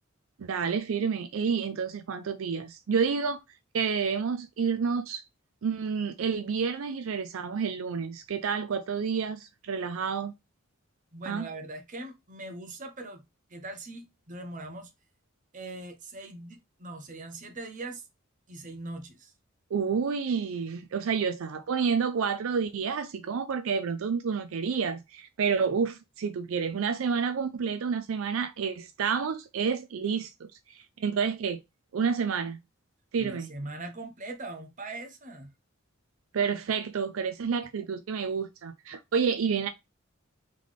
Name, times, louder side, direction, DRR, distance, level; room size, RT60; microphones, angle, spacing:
voice 1, 0.4-3.4 3.7-5.2 5.6-10.3 11.3-11.5 19.7-31.6 31.9-32.6 33.1-33.5 36.3-39.7, right 6 dB, 75° right, 0.4 m, -29 dB
voice 2, 11.1-13.2 13.5-14.9 15.5-18.0 18.5-19.3 33.2-35.5, right 2 dB, 40° right, 0.9 m, -41 dB
3.8 x 3.3 x 3.5 m
head